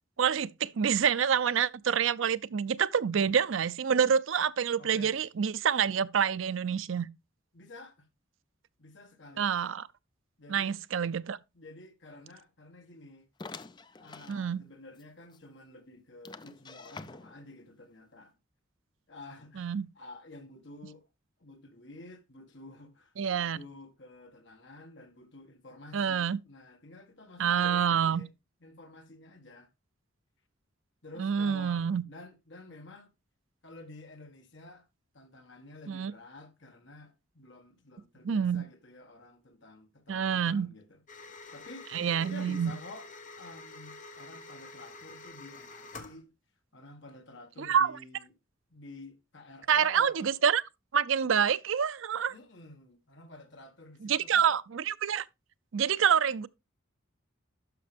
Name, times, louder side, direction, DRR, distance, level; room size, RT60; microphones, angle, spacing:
voice 1, 0.2-7.1 9.4-9.9 10.5-11.4 14.3-14.6 19.6-19.8 23.2-23.6 25.9-26.4 27.4-28.2 31.2-32.0 35.9-36.1 38.2-38.6 40.1-40.7 41.9-42.7 47.6-47.9 49.7-50.6 50.9-52.3 54.0-55.2 55.7-56.5, right 7 dB, 70° right, 0.5 m, -27 dB
voice 2, 4.8-5.2 7.5-8.1 8.8-9.5 10.4-10.8 11.5-13.3 14.0-18.3 19.1-21.1 21.4-28.3 28.6-29.7 31.0-33.1 33.6-34.9 35.1-43.1 43.4-46.3 46.7-48.3 48.7-50.4 52.3-54.5, left 2 dB, 60° left, 1.8 m, -50 dB
sound 1, 13.4-14.4 14.9-15.0 15.3-15.4 16.2-17.5, left 4 dB, 20° left, 0.4 m, -46 dB
sound 2, 41.1-46.2, left 3 dB, 40° left, 1.2 m, -48 dB
11.5 x 5.8 x 3.4 m
head